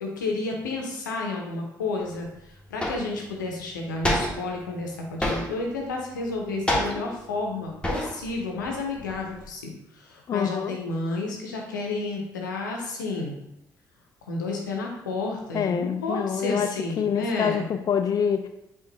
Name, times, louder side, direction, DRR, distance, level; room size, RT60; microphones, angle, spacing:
voice 1, 0.0-13.4 14.2-17.7, left 3 dB, 85° left, 1 dB, 0.7 m, -31 dB
sound 1, 2.1-2.2 2.8-3.2 4.0-4.6 5.2-5.7 6.7-7.2 7.8-8.3 8.6-9.5, left 1 dB, 10° left, 1.2 m, -28 dB
voice 2, 10.3-10.8 15.5-16.7 17.0-18.5, left 7 dB, 40° left, 7 dB, 0.4 m, -26 dB
5.3 x 2.4 x 3.9 m, 0.85 s
figure-of-eight pair, 40°, 10 cm